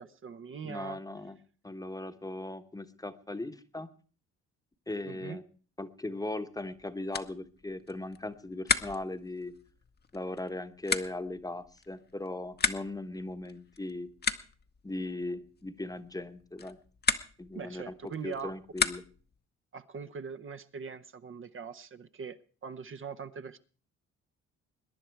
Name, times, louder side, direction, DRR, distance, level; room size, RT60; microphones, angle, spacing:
voice 1, 0.0-1.0 5.0-5.4 17.5-18.5 19.7-23.6, right 6 dB, 45° right, 9 dB, 0.8 m, -42 dB
voice 2, 0.6-1.4 1.6-3.9 4.9-5.4 5.8-9.5 10.1-14.1 14.8-16.8 17.4-17.9 18.2-19.0, left 2 dB, 10° left, 9 dB, 1.1 m, -38 dB
sound 1, 6.6-19.4, left 5 dB, 35° left, 0.9 m, -36 dB
22.5 x 10.0 x 4.6 m, 0.40 s
cardioid pair, 90°, 30 cm